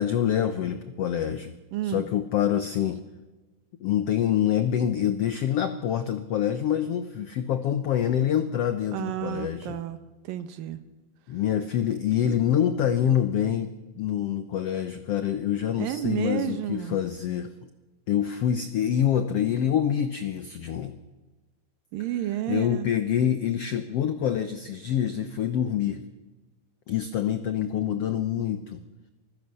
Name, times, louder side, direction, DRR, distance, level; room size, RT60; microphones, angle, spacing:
voice 1, 0.0-1.5 1.8-3.0 3.8-9.8 11.3-17.5 18.1-20.9 22.5-26.0 26.9-28.8, left 9 dB, 85° left, 10 dB, 1.3 m, -26 dB
voice 2, 1.7-2.1 8.9-10.0 10.2-10.8 15.8-17.0 21.9-22.9, right 12 dB, 80° right, 11 dB, 2.8 m, -31 dB
24.0 x 16.0 x 6.7 m, 1.2 s
omnidirectional pair, 4.1 m